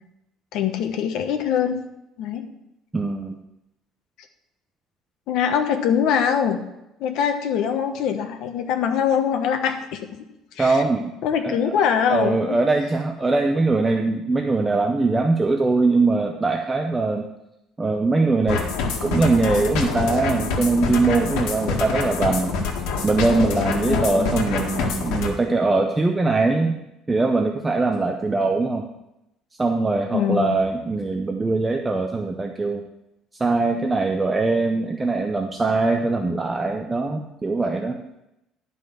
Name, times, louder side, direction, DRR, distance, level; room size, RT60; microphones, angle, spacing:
voice 1, 0.5-1.8 2.2-2.4 5.3-6.6 7.0-10.0 10.6-10.8 11.2-12.6 23.8-24.3 30.1-30.5, left 8 dB, 60° left, 6 dB, 1.1 m, -23 dB
voice 2, 2.9-3.3 10.6-11.1 11.4-11.7 12.1-17.3 17.8-18.6 19.0-22.5 23.0-26.8 27.1-28.8 29.6-32.8 33.4-38.0, right 3 dB, 10° right, 4 dB, 0.5 m, -22 dB
sound 1, 18.5-25.3, left 4 dB, 85° left, 1.9 m, -26 dB
11.0 x 5.4 x 6.4 m, 0.89 s
cardioid pair, 170°, 0 cm